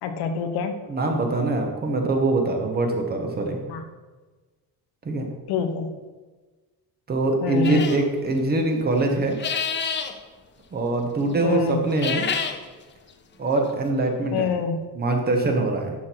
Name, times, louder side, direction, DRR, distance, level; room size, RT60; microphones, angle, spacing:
voice 1, 0.0-0.8 3.7-3.8 5.5-5.9 7.4-7.9 11.4-11.8 14.3-14.8, left 5 dB, 70° left, 7 dB, 1.1 m, -26 dB
voice 2, 0.9-3.6 5.0-5.3 7.1-9.3 10.7-12.3 13.4-14.5 14.9-15.9, right 2 dB, 25° right, 3 dB, 1.2 m, -23 dB
sound 1, 7.6-8.0 9.3-10.1 11.9-12.6, left 6 dB, 30° left, 0.7 m, -27 dB
11.5 x 6.3 x 4.5 m, 1.3 s
cardioid pair, 180°, 39 cm